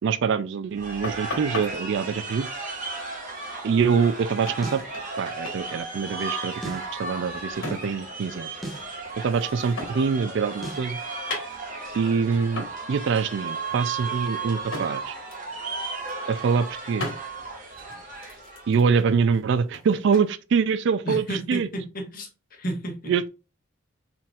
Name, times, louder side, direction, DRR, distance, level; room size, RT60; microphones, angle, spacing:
voice 1, 0.0-2.5 3.6-4.8 5.2-8.5 9.2-11.0 11.9-15.1 16.3-17.1 18.7-21.7 23.1-23.3, right 6 dB, 65° right, 0.4 m, -24 dB
sound 1, 0.7-18.8, right 3 dB, 45° right, 1.6 m, -35 dB
sound 2, 1.0-1.7 3.8-3.9 4.1-4.2 4.4-5.2 5.4-5.6 5.9-8.2 8.5-10.2 10.5-12.0 12.6-12.8 13.2-13.4 13.7-14.9 15.3-15.5 15.8-16.4 17.0-17.2 17.7-20.3, left 2 dB, 90° left, 1.4 m, -37 dB
sound 3, 4.6-4.9 6.6-6.9 8.6-8.9 10.6-10.9, right 1 dB, ahead, 1.0 m, -36 dB
voice 2, 21.0-23.1, right 1 dB, 50° left, 1.3 m, -32 dB
4.3 x 3.8 x 2.4 m
head